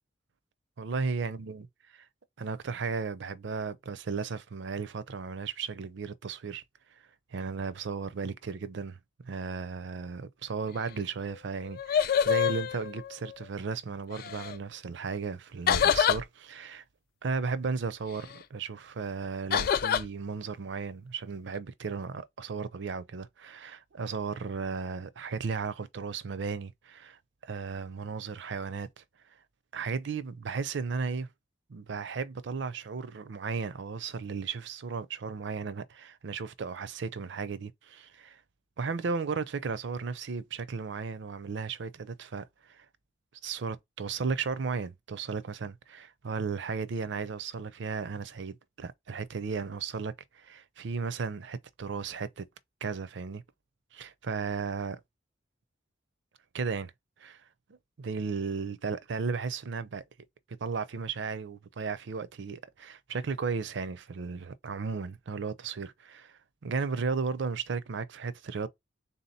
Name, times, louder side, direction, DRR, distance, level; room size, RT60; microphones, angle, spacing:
voice 1, 0.8-1.7 1.9-2.1 2.4-6.6 7.3-9.0 9.2-16.8 17.2-29.0 29.7-31.3 31.7-38.4 38.8-42.9 43.4-52.5 52.8-53.4 53.9-55.0 56.5-56.9 57.2-57.4 58.0-60.0 60.6-68.7, right 5 dB, 65° right, 0.5 m, -35 dB
sound 1, 11.2-11.3 11.6-13.4 14.1-14.6 15.7-16.2 19.5-20.0, left 8 dB, 50° left, 0.3 m, -26 dB
3.7 x 2.8 x 4.0 m
head